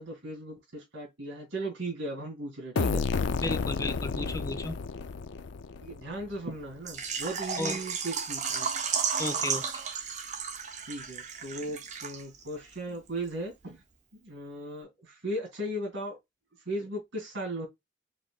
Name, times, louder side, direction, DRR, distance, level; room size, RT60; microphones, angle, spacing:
voice 1, 0.0-3.0 5.8-8.7 10.9-13.8 14.2-16.2 16.5-17.7, right 1 dB, 70° right, 2.4 m, -37 dB
sound 1, 2.8-6.4, left 4 dB, 70° left, 0.5 m, -31 dB
voice 2, 3.4-4.8 7.6-7.8 9.2-9.8, left 2 dB, 15° left, 0.5 m, -34 dB
Water / Liquid, 6.9-12.5 12.7-12.8 13.3-13.4, right 6 dB, 40° right, 0.9 m, -33 dB
5.1 x 4.0 x 2.3 m
head